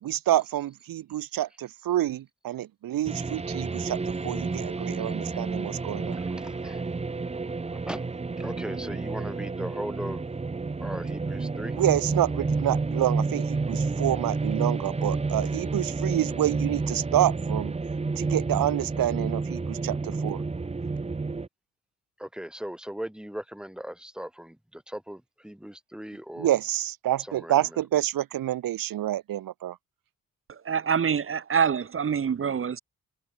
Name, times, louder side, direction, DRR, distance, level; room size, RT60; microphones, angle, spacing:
voice 1, 0.0-6.2 11.8-17.7 18.1-20.4 26.4-29.8, right 13 dB, 80° right, 1.8 m, -28 dB
sound 1, 3.1-21.5, right 4 dB, 20° right, 1.6 m, -30 dB
voice 2, 6.1-7.0 7.9-8.1 8.4-10.3 10.8-11.8 22.2-26.5 27.2-27.6, equal, ahead, 5.4 m, -38 dB
voice 3, 30.5-32.8, right 7 dB, 40° right, 1.7 m, -26 dB
cardioid pair, 145°, 34 cm